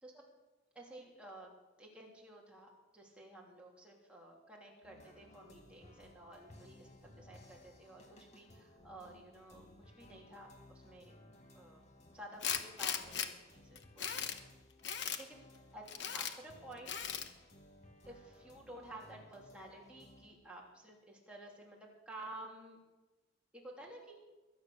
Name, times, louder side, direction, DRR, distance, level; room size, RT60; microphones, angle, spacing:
voice 1, 0.7-1.5 1.8-11.1 11.5-11.8 12.1-13.3 13.5-14.5 15.2-15.4 15.7-16.9 18.0-22.8 23.5-24.2, right 1 dB, 5° right, -2 dB, 3.2 m, -53 dB
sound 1, 4.8-20.3, left 1 dB, 35° left, 1.9 m, -60 dB
Tools, 12.4-13.3 13.8-14.4 14.8-15.2 15.9-16.3 16.9-17.3, left 8 dB, 60° left, 1.2 m, -37 dB
22.5 x 9.4 x 6.7 m, 1.1 s
head